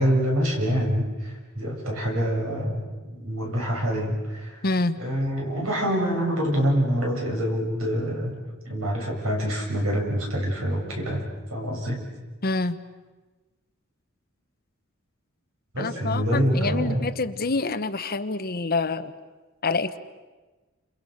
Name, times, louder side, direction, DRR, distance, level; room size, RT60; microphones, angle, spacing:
voice 1, 0.0-4.6 5.0-8.4 8.7-11.2 11.5-12.0 15.7-17.0, equal, 80° right, 0 dB, 7.3 m, -26 dB
voice 2, 4.6-5.0 12.4-12.8 15.8-19.1 19.6-20.0, left 3 dB, 45° left, 11 dB, 1.2 m, -26 dB
30.0 x 28.0 x 6.6 m, 1.3 s
head